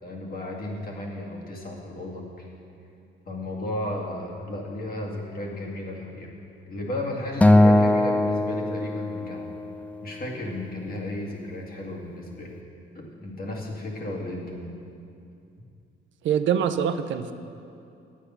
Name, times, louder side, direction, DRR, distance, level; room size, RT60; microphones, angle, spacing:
voice 1, 0.0-2.5 3.3-6.3 6.7-9.5 10.0-12.5 12.9-14.7, left 1 dB, 50° left, -2 dB, 2.1 m, -34 dB
Acoustic guitar, 7.4-9.8, left 1 dB, 5° left, 0.4 m, -20 dB
voice 2, 16.2-17.3, right 8 dB, 70° right, 9 dB, 0.6 m, -24 dB
9.8 x 8.4 x 5.7 m, 2.6 s
cardioid pair, 90°, 20 cm